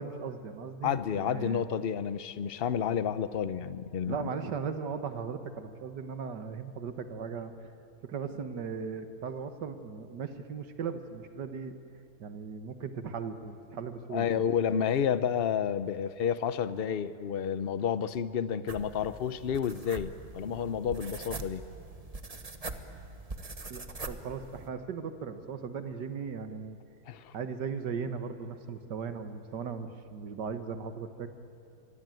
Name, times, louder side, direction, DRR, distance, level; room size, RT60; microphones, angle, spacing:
voice 1, 0.0-1.6 4.1-7.5 8.0-11.8 12.2-14.5 23.7-26.8 27.3-31.3, right 6 dB, 65° right, 9 dB, 2.0 m, -38 dB
voice 2, 0.8-4.2 14.1-21.7 27.1-27.3, left 8 dB, 55° left, 14 dB, 0.6 m, -30 dB
sound 1, 18.7-24.7, right 3 dB, 25° right, 1.0 m, -43 dB
25.5 x 22.5 x 9.2 m, 2.5 s
omnidirectional pair, 2.0 m